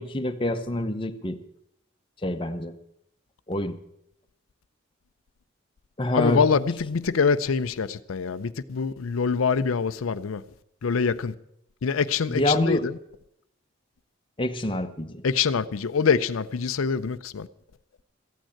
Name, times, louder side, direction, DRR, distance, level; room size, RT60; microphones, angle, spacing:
voice 1, 0.0-1.4 2.2-2.7 3.5-3.8 6.0-6.4 12.3-12.9 14.4-15.2, left 1 dB, 25° left, 0.8 m, -26 dB
voice 2, 6.1-10.4 10.8-11.3 11.8-13.0 15.2-17.5, left 5 dB, 85° left, 0.5 m, -25 dB
14.0 x 9.1 x 8.6 m
head